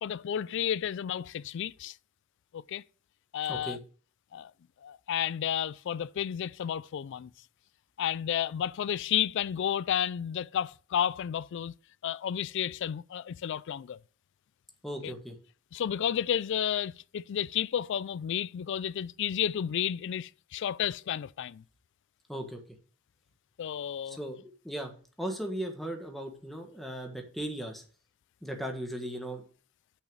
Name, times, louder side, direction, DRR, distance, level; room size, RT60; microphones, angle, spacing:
voice 1, 0.0-2.0 2.5-2.8 3.3-3.8 4.3-4.5 4.8-7.3 8.0-11.7 12.0-14.0 15.0-15.1 15.7-21.6 23.6-24.2, left 9 dB, 60° left, 0.3 m, -32 dB
voice 2, 14.8-15.3 22.3-22.6 24.1-24.9 25.2-27.8 28.4-29.4, right 1 dB, ahead, 1.4 m, -37 dB
6.5 x 5.8 x 7.0 m
head